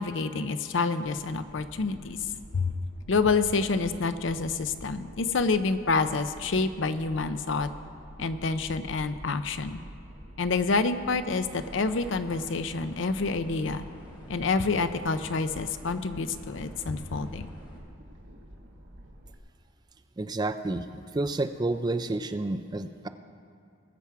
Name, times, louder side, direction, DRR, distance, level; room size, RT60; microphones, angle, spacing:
voice 1, 0.0-2.2 2.5-2.7 3.1-7.7 8.2-9.8 10.4-13.8 14.3-17.5, left 4 dB, 70° left, 11 dB, 0.6 m, -28 dB
sound 1, 1.0-19.4, equal, 70° right, 1.3 m, -48 dB
sound 2, 11.4-17.8, equal, 25° left, 2.1 m, -50 dB
voice 2, 20.2-20.9 21.1-23.1, right 2 dB, 20° right, 9 dB, 0.4 m, -29 dB
20.0 x 7.2 x 4.7 m, 2.6 s
head